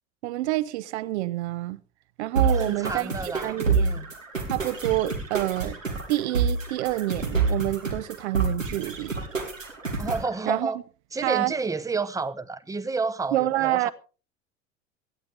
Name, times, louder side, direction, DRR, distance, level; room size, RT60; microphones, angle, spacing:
voice 1, 0.2-1.8 2.2-4.0 4.5-5.8 6.1-9.1 10.5-10.7 11.2-11.5 13.3-13.9, right 16 dB, 60° right, 0.7 m, -27 dB
sound 1, 2.4-10.3, right 4 dB, 85° right, 2.7 m, -28 dB
voice 2, 2.5-4.1 10.0-10.8 11.1-13.9, right 4 dB, 10° right, 0.9 m, -30 dB
18.0 x 13.0 x 3.5 m
figure-of-eight pair, 70°, 38 cm